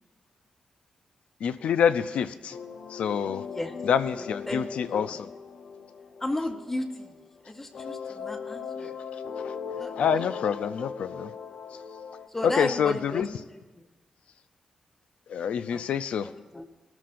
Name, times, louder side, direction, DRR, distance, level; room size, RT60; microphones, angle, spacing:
voice 1, 1.4-2.6 2.9-3.4 3.8-5.3 9.1-11.3 12.4-13.3 15.3-16.3, left 7 dB, 85° left, 10 dB, 0.4 m, -27 dB
sound 1, 2.5-7.4 7.7-12.3, left 6 dB, 65° left, 0.8 m, -39 dB
voice 2, 4.2-4.6 4.9-5.2 6.2-7.1 7.5-9.0 9.7-10.3 12.3-13.4 15.7-15.9 16.5-16.6, left 1 dB, 15° left, 4 dB, 0.7 m, -34 dB
19.0 x 13.0 x 2.5 m, 1.2 s
wide cardioid pair, 135°, 2 cm